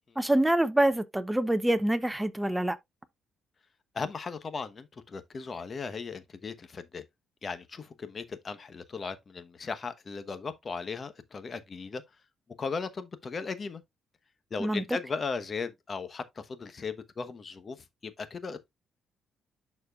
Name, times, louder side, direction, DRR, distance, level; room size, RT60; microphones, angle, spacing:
voice 1, 0.2-2.8 14.6-14.8, right 1 dB, 10° right, 0.7 m, -26 dB
voice 2, 3.9-7.0 7.4-12.0 12.6-13.8 14.5-18.7, left 4 dB, 40° left, 1.0 m, -37 dB
11.0 x 4.4 x 2.4 m
cardioid pair, 90°, 0 cm